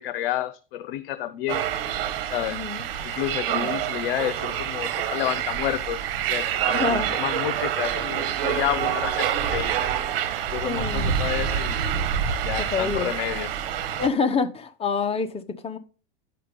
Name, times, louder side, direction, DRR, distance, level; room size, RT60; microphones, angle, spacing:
voice 1, 0.0-1.7 2.3-2.6 3.0-9.9 10.5-11.8 12.4-13.5, left 13 dB, 80° left, 0.7 m, -30 dB
sound 1, 1.5-14.1, right 9 dB, 70° right, 1.5 m, -27 dB
voice 2, 2.5-2.8 3.5-3.7 6.7-7.1 10.6-11.1 12.6-13.1 14.0-15.8, left 5 dB, 20° left, 1.1 m, -27 dB
10.0 x 5.8 x 5.2 m
supercardioid pair, 120°, 29 cm